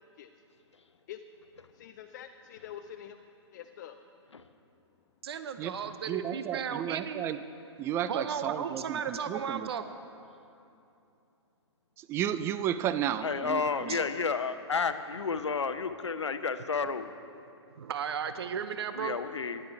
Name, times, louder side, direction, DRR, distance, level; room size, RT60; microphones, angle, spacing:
voice 1, 1.7-3.2 3.5-4.0, left 10 dB, 40° left, 8 dB, 0.5 m, -45 dB
voice 2, 5.2-7.2 8.1-9.8 13.9-14.0 17.8-19.2, right 7 dB, 60° right, 10 dB, 0.7 m, -35 dB
voice 3, 6.1-7.4 7.8-9.7 12.0-14.0, right 10 dB, 15° right, 13 dB, 0.4 m, -33 dB
voice 4, 13.2-17.1 18.9-19.6, left 5 dB, 75° left, 11 dB, 0.7 m, -31 dB
14.5 x 11.0 x 4.6 m, 2.7 s
figure-of-eight pair, 120°, 15 cm